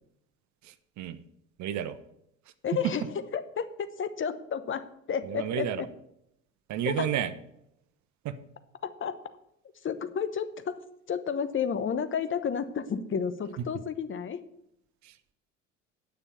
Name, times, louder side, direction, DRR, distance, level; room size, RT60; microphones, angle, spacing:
voice 1, 0.6-1.2 1.6-2.0 5.2-5.8 6.7-7.3 8.2-8.4 15.0-15.1, right 9 dB, 45° right, 13 dB, 0.9 m, -31 dB
voice 2, 2.6-3.7 4.0-5.9 6.8-7.1 8.8-9.2 9.8-10.8 11.1-14.4, left 7 dB, 30° left, 12 dB, 1.0 m, -31 dB
9.9 x 6.5 x 7.0 m, 0.79 s
figure-of-eight pair, 60°, 38 cm